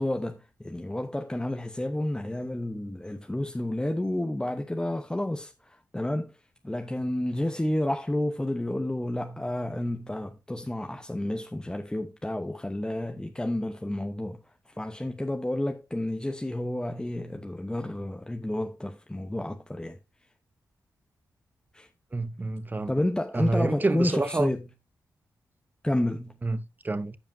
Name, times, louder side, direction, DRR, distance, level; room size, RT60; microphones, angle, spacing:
voice 1, 0.0-6.3 6.6-14.4 14.8-20.0 21.7-21.9 22.9-24.6 25.8-26.3, left 1 dB, 10° left, 0.9 m, -30 dB
voice 2, 22.1-23.0 23.3-24.5 26.4-27.2, right 2 dB, 25° right, 0.8 m, -28 dB
14.5 x 5.2 x 2.7 m
cardioid pair, 60°, 7 cm